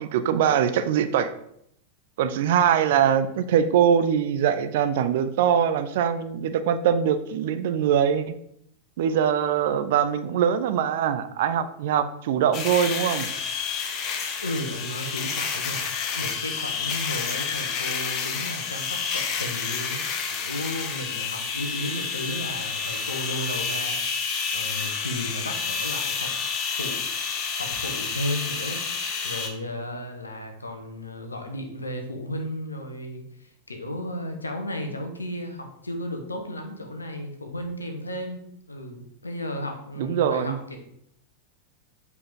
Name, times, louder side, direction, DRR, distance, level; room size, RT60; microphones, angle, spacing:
voice 1, 0.0-1.3 2.2-8.3 9.0-13.3 40.0-40.6, right 8 dB, 55° right, 10 dB, 0.5 m, -22 dB
sound 1, 12.5-29.5, left 6 dB, 35° left, 0.9 m, -29 dB
voice 2, 14.4-15.8 16.1-20.0 20.3-26.3 26.8-27.0 27.6-28.8 29.2-38.4 38.7-40.8, left 1 dB, 80° left, 4 dB, 1.1 m, -34 dB
7.6 x 4.8 x 3.6 m, 0.72 s
figure-of-eight pair, 90°, 0 cm